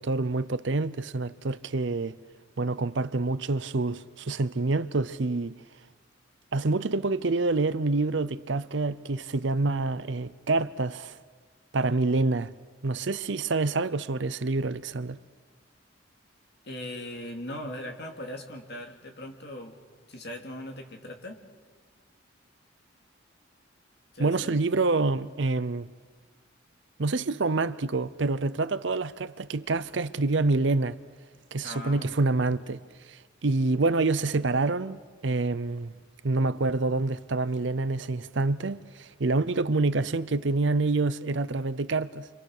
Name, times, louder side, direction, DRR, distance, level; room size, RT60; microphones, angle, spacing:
voice 1, 0.0-2.1 2.6-5.5 6.5-11.2 11.7-12.5 12.8-15.2 24.2-25.9 27.0-31.0 31.5-32.8 33.1-35.9 36.2-42.3, right 3 dB, 65° right, 0.7 m, -27 dB
voice 2, 16.6-19.8 20.1-21.4 24.1-24.6 31.6-32.2, left 1 dB, 55° left, 3.1 m, -39 dB
29.5 x 26.0 x 6.6 m
head